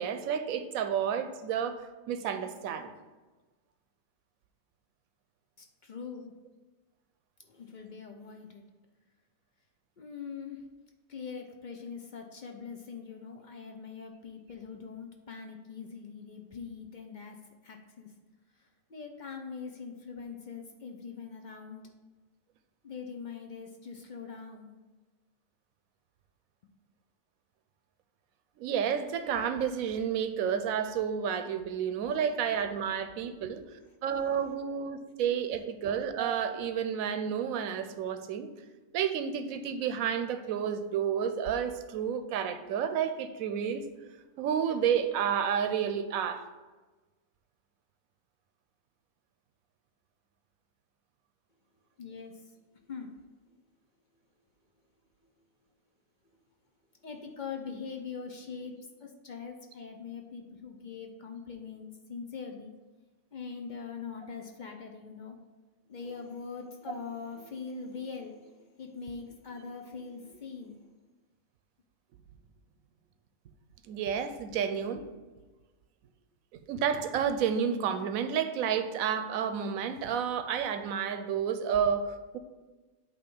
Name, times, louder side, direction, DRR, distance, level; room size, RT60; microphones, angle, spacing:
voice 1, 0.0-2.9 28.6-33.6 34.0-38.5 38.9-43.8 44.4-46.4 73.9-75.0 76.7-82.4, right 8 dB, 75° right, 9 dB, 1.0 m, -30 dB
voice 2, 5.6-6.3 7.4-8.6 10.0-10.6 11.1-17.4 17.6-18.1 18.6-21.9 22.8-24.8 33.2-33.7 34.4-34.5 52.0-52.5 52.9-53.1 57.0-58.8 59.0-62.7 63.3-65.4 65.9-70.8, left 5 dB, 55° left, 3 dB, 0.5 m, -42 dB
8.4 x 3.0 x 5.3 m, 1.2 s
omnidirectional pair, 1.5 m